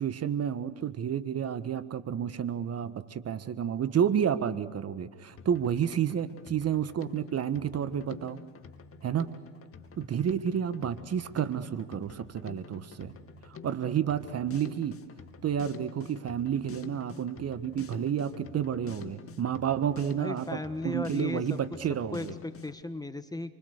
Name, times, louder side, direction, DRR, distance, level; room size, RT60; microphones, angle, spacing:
voice 1, 0.0-8.4 9.0-9.3 10.0-13.1 13.4-15.0 15.4-20.6 20.8-22.3, right 8 dB, 35° right, 12 dB, 1.5 m, -30 dB
Drum kit, 5.4-22.8, left 6 dB, 30° left, 2.4 m, -48 dB
voice 2, 20.2-21.6 22.1-23.5, left 2 dB, 10° left, 10 dB, 1.5 m, -36 dB
29.0 x 25.0 x 6.7 m, 1.4 s
hypercardioid pair, 85°, 43 cm